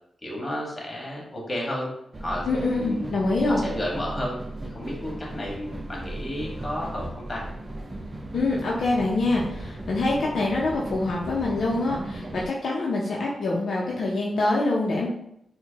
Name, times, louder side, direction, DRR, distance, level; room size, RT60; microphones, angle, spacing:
voice 1, 0.2-1.9 2.2-3.1 3.5-4.4 4.6-7.4, left 1 dB, 30° left, -3 dB, 1.4 m, -32 dB
sound 1, 2.1-12.5, right 1 dB, 30° right, 0.7 m, -36 dB
voice 2, 2.5-3.6 8.3-15.1, left 2 dB, 70° left, -4 dB, 0.6 m, -25 dB
4.3 x 2.1 x 2.9 m, 0.76 s
cardioid pair, 65°, 0 cm